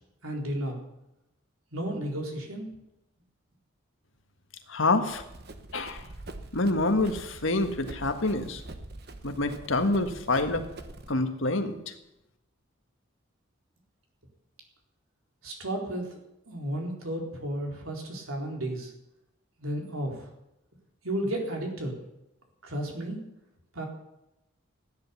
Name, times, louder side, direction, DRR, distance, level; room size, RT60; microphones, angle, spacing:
voice 1, 0.2-0.8 1.7-2.7 15.4-16.0 16.5-18.9 19.6-20.3 21.0-21.9 22.6-23.2 23.7-23.8, right 1 dB, 85° right, 1 dB, 4.0 m, -33 dB
voice 2, 4.7-5.2 5.7-6.0 6.5-8.6 9.2-10.6 11.1-11.8, left 2 dB, 70° left, 7 dB, 1.6 m, -27 dB
Run, 5.1-11.1, right 2 dB, 50° right, 1.1 m, -44 dB
15.5 x 10.5 x 7.0 m, 0.88 s
head